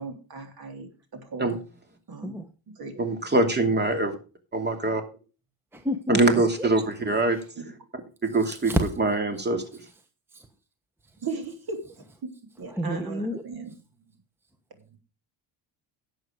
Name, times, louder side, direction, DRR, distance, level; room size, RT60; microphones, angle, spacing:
voice 1, 0.0-1.6 2.1-2.3 2.7-3.1 7.7-7.8 11.2-13.7, right 4 dB, 45° right, 3.5 m, -37 dB
voice 2, 3.0-4.2 4.5-5.0 6.1-7.4 8.2-8.7 9.0-9.6, right 2 dB, 20° right, 2.8 m, -23 dB
voice 3, 5.7-6.7 7.3-7.4 8.4-8.8 10.3-10.5 12.7-13.4, equal, 5° right, 1.1 m, -30 dB
11.0 x 8.2 x 5.0 m
cardioid pair, 95°, 50 cm